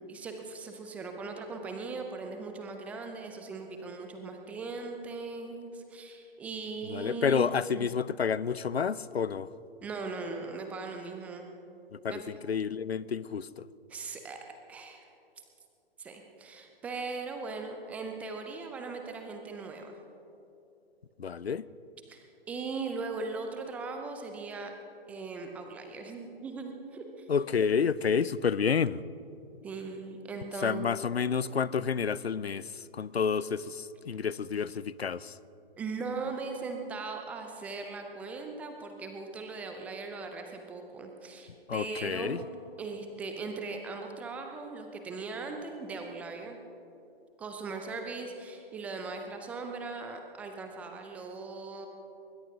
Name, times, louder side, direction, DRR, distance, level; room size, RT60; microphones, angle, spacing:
voice 1, 0.1-7.9 9.8-11.5 12.1-12.2 13.9-14.4 14.7-15.1 16.0-20.0 22.1-24.7 25.1-27.2 29.6-30.8 35.8-42.4 42.8-46.6 47.4-51.9, right 4 dB, 5° right, 0.3 m, -39 dB
voice 2, 6.9-9.5 11.9-13.7 21.2-21.6 27.3-29.0 30.6-35.4 41.7-42.4, left 6 dB, 90° left, 0.5 m, -30 dB
21.0 x 20.0 x 2.7 m
figure-of-eight pair, 120°, 31 cm